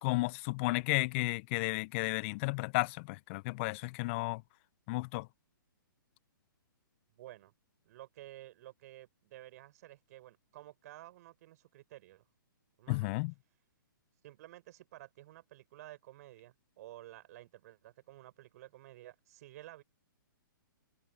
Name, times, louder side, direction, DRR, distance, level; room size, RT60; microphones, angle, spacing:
voice 1, 0.0-4.4 4.9-5.3 12.9-13.3, left 24 dB, 35° left, 0.6 m, -33 dB
voice 2, 7.1-7.5 7.8-12.2 12.8-13.1 14.2-19.8, right 15 dB, 45° right, 6.3 m, -52 dB
hypercardioid pair, 130°, 11 cm